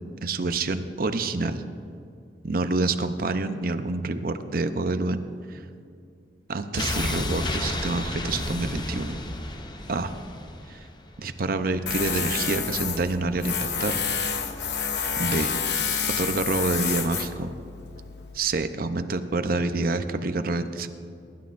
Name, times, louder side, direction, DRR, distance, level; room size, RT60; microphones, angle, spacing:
voice 1, 0.2-1.6 2.4-5.2 5.5-5.6 6.5-9.2 9.9-10.1 10.7-10.8 11.2-14.0 15.2-15.5 16.1-17.5 18.3-20.9, right 3 dB, 55° right, 9 dB, 0.7 m, -27 dB
sound 1, 6.7-11.7 12.0-12.1, left 2 dB, 25° left, 0.6 m, -31 dB
Tools, 11.9-18.4, left 6 dB, 70° left, 0.8 m, -29 dB
23.5 x 11.5 x 2.6 m, 2.4 s
head